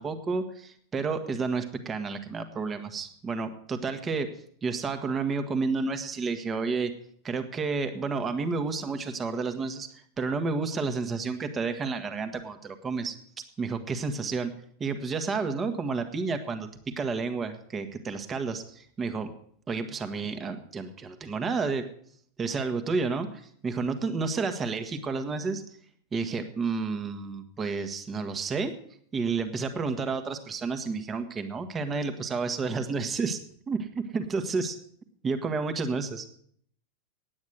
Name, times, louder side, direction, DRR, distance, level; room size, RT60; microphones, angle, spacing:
voice 1, 0.0-4.3 4.6-6.9 7.2-13.1 13.6-14.5 14.8-19.3 19.7-21.9 22.4-25.6 26.1-28.7 29.1-33.4 33.7-34.8 35.2-36.2, right 4 dB, 20° right, 7 dB, 1.3 m, -30 dB
9.6 x 8.8 x 8.0 m, 0.62 s
figure-of-eight pair, 90°, 0 cm